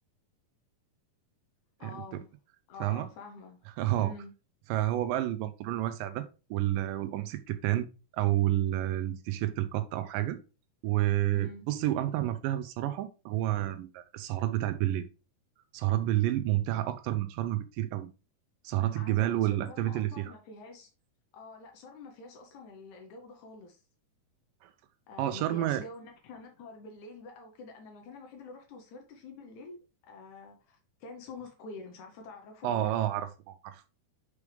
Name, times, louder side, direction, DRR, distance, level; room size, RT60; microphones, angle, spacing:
voice 1, 1.8-2.3 2.7-3.6 4.0-4.3 11.3-11.6 18.9-20.9 21.3-23.8 25.1-32.9, left 3 dB, 70° left, 2.0 m, -47 dB
voice 2, 3.8-4.1 4.7-6.3 6.5-7.9 8.1-10.4 10.8-15.1 15.7-18.1 18.6-20.3 24.6-24.7 25.2-25.8 32.6-33.8, right 14 dB, 80° right, 2.1 m, -29 dB
6.1 x 4.9 x 3.2 m
omnidirectional pair, 4.1 m